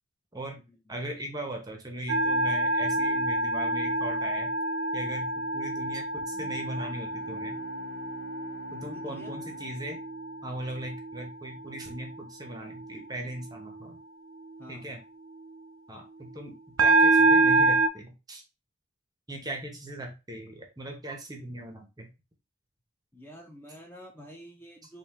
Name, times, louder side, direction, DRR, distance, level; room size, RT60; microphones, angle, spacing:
voice 1, 0.9-4.5 4.9-7.6 8.7-10.0 10.4-14.0 14.7-15.0 15.9-18.4 19.3-22.1, right 1 dB, 20° right, 3 dB, 0.8 m, -39 dB
sound 1, 2.1-10.4 10.8-11.2 16.8-17.9, right 2 dB, 80° right, 0.6 m, -26 dB
Bowed string instrument, 6.3-11.3, left 3 dB, 90° left, 0.9 m, -49 dB
voice 2, 8.8-9.3 14.6-15.0 23.1-25.0, equal, 10° left, 0 dB, 0.7 m, -48 dB
3.6 x 2.7 x 4.1 m, 0.28 s
head